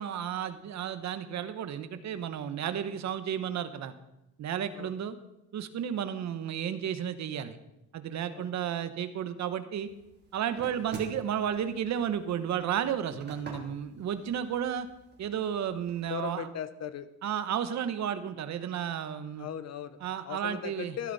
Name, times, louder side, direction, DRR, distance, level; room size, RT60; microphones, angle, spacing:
voice 1, 0.0-3.9 4.4-5.2 5.5-7.6 7.9-9.9 10.3-14.9 15.2-16.5 17.2-19.5 20.0-21.0, right 9 dB, 60° right, 11 dB, 1.2 m, -32 dB
sound 1, 9.9-16.1, right 3 dB, 35° right, 3.4 m, -49 dB
voice 2, 16.1-17.1 19.4-20.0 20.2-21.1, left 9 dB, 55° left, 12 dB, 1.1 m, -38 dB
15.0 x 12.5 x 4.2 m, 0.90 s
cardioid pair, 120°, 31 cm